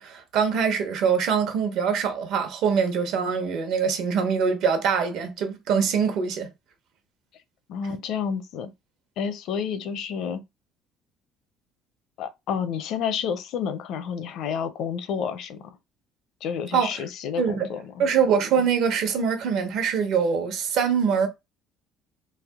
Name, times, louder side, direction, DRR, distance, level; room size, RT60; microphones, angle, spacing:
voice 1, 0.0-6.5 16.7-17.0 17.4-17.7 18.0-21.3, right 6 dB, 65° right, 1.0 m, -23 dB
voice 2, 7.7-8.7 9.2-10.4 12.2-15.8 16.4-18.0, left 7 dB, 65° left, 0.6 m, -30 dB
3.4 x 2.8 x 3.5 m
cardioid pair, 150°, 0 cm